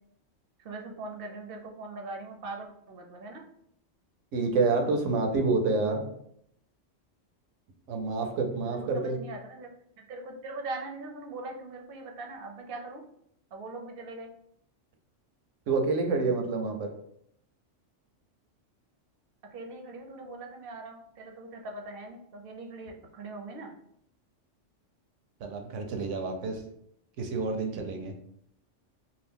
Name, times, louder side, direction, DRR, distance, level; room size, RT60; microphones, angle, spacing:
voice 1, 0.6-3.4 8.6-9.7 10.0-13.0 13.5-14.3 19.5-23.7, right 2 dB, 60° right, 2 dB, 0.6 m, -41 dB
voice 2, 4.3-6.0 7.9-9.2 15.7-16.9 25.4-26.6 27.2-28.1, right 3 dB, 85° right, 4 dB, 1.0 m, -28 dB
2.7 x 2.4 x 3.5 m, 0.71 s
omnidirectional pair, 1.3 m